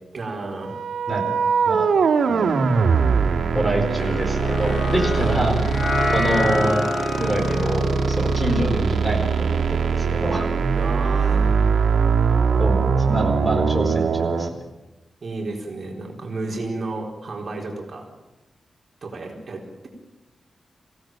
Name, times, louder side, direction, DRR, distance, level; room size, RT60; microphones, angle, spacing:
voice 1, 0.1-0.8 6.0-6.1 10.8-11.8 15.2-18.1 19.0-19.9, right 2 dB, 40° right, 0 dB, 4.2 m, -32 dB
sound 1, 0.6-14.5, right 5 dB, 85° right, 2.4 m, -21 dB
voice 2, 2.3-2.7 3.5-5.6 6.1-6.8 7.2-10.5 12.6-14.6, right 1 dB, 5° left, 3 dB, 4.6 m, -25 dB
sound 2, 4.0-10.4, left 2 dB, 45° left, 5.8 m, -27 dB
26.5 x 17.0 x 9.0 m, 1.1 s
wide cardioid pair, 170°, 0 cm